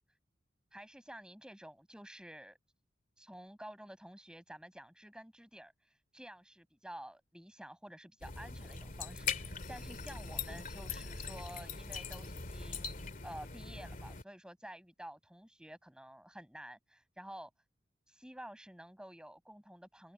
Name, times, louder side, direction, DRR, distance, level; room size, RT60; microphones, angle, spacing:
voice 1, 0.7-2.6 3.2-17.5 18.1-20.1, right 1 dB, 5° right, 8.0 m, -51 dB
sound 1, 8.2-14.2, left 5 dB, 45° left, 2.3 m, -41 dB
head